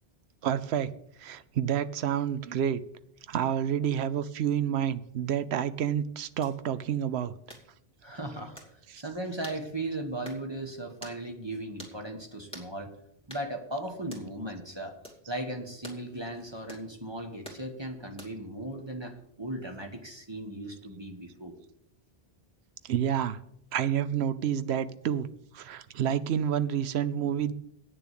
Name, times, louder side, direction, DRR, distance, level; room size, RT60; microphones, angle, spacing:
voice 1, 0.4-0.9 1.2-2.8 3.3-7.3 8.3-8.4 8.9-9.0 22.8-23.4 23.7-25.3 25.5-27.5, right 9 dB, 85° right, 0.9 m, -29 dB
sound 1, 6.4-6.6 7.5-7.7 8.6-8.7 9.4-9.6 10.2-10.4 11.0-11.2 11.8-12.0 12.5-12.7 13.3-13.5 14.1-14.3 15.0-15.2 15.8-16.0 16.7-16.9 17.4-17.6 18.2-18.5, right 1 dB, 5° left, 2.4 m, -46 dB
voice 2, 8.0-8.6 9.0-12.9 13.3-15.0 15.3-21.5, right 1 dB, 25° right, 1.3 m, -37 dB
9.0 x 7.0 x 8.2 m
omnidirectional pair, 1.1 m